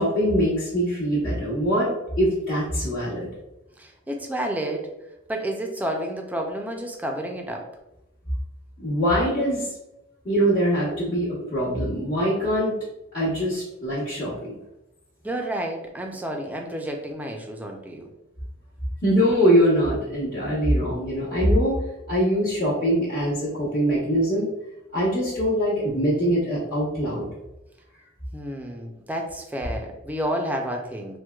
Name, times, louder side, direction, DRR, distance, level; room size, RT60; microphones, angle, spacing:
voice 1, 0.0-1.9 2.2-3.3 8.8-9.7 10.2-12.8 13.1-14.6 19.0-21.8 22.1-24.5 24.9-27.3, equal, 45° left, -11 dB, 1.0 m, -23 dB
voice 2, 3.8-4.9 5.3-7.7 15.2-18.1 28.3-31.2, right 1 dB, 10° right, 2 dB, 0.4 m, -30 dB
4.4 x 2.2 x 2.3 m, 0.91 s
head